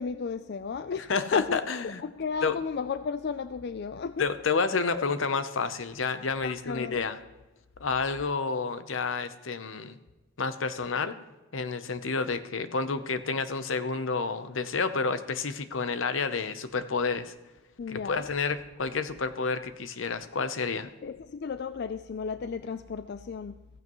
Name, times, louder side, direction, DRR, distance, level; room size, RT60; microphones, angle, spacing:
voice 1, 0.0-1.6 2.0-4.3 4.9-5.0 6.4-7.0 17.8-18.3 21.0-23.6, left 5 dB, 55° left, 11 dB, 0.4 m, -33 dB
voice 2, 1.1-2.0 2.4-2.6 4.2-7.2 7.8-10.0 10.4-11.1 11.5-17.3 17.9-20.9, left 4 dB, 75° left, 11 dB, 0.8 m, -30 dB
15.0 x 15.0 x 3.1 m, 1.1 s
head